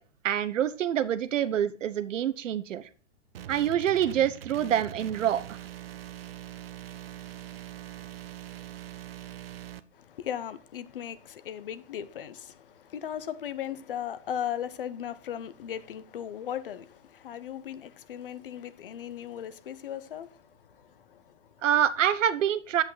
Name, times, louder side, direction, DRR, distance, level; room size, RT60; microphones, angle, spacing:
voice 1, 0.2-2.8 3.5-5.6 21.6-22.8, right 10 dB, 75° right, 0.9 m, -26 dB
sound 1, 3.3-9.8, right 11 dB, 50° right, 0.6 m, -42 dB
voice 2, 9.9-21.6, left 9 dB, 45° left, 0.6 m, -37 dB
8.2 x 8.1 x 4.0 m
hypercardioid pair, 180°, 38 cm